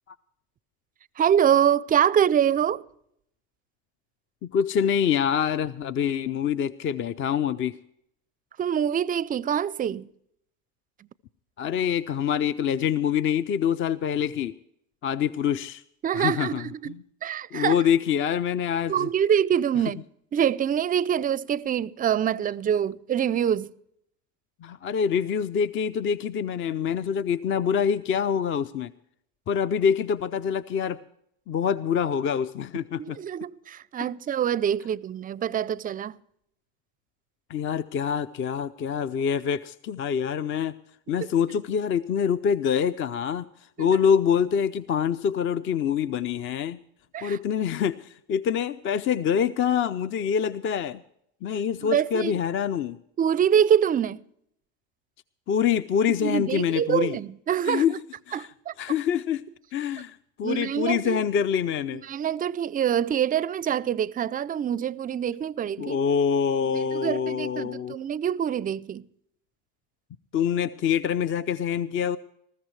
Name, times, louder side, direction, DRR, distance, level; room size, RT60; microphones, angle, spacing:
voice 1, 1.2-2.8 8.6-10.1 16.0-17.7 18.9-20.0 20.3-23.7 33.0-36.2 43.8-43.9 47.1-47.4 51.8-52.4 53.2-54.2 56.1-58.0 58.3-58.7 60.4-61.3 61.9-66.0 66.7-69.1, right 9 dB, 25° right, 0.4 m, -25 dB
voice 2, 4.4-7.8 11.6-14.5 15.0-15.8 16.2-17.0 17.5-19.1 24.6-28.9 29.5-31.0 31.5-33.2 37.5-40.7 41.1-43.5 43.8-46.8 47.2-51.0 51.4-53.0 55.5-57.2 57.7-57.9 58.3-58.5 58.8-59.4 59.7-62.0 65.8-68.0 70.3-72.2, left 8 dB, 35° left, 0.5 m, -25 dB
20.0 x 14.5 x 3.2 m
supercardioid pair, 95°, 34 cm